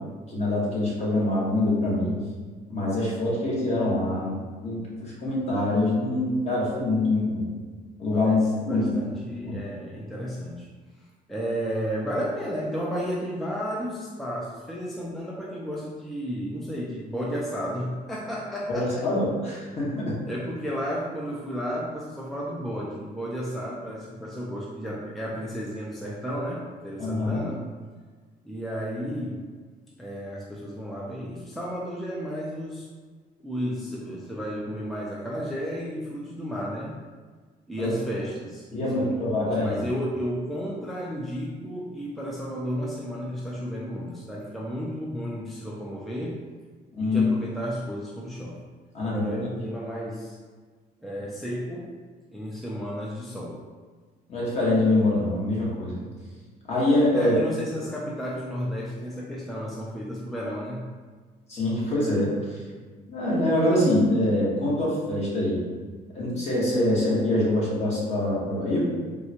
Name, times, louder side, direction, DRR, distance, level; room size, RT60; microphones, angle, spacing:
voice 1, 0.3-2.1 2.7-7.5 8.0-8.3 8.7-8.9 9.4-9.6 18.7-20.2 27.0-27.4 37.8-37.9 38.7-39.8 46.9-47.2 48.9-49.3 54.3-56.0 56.7-57.3 61.5-62.3 63.1-65.6 66.1-68.8, left 1 dB, 40° left, -6 dB, 1.2 m, -24 dB
voice 2, 8.1-10.7 11.3-19.1 20.3-27.6 28.5-29.5 30.0-32.9 33.4-36.9 37.7-46.4 47.0-48.6 49.0-50.4 51.0-52.0 52.3-53.6 57.1-60.9, equal, ahead, -5 dB, 0.4 m, -33 dB
3.6 x 2.2 x 2.8 m, 1.5 s
cardioid pair, 110°, 17 cm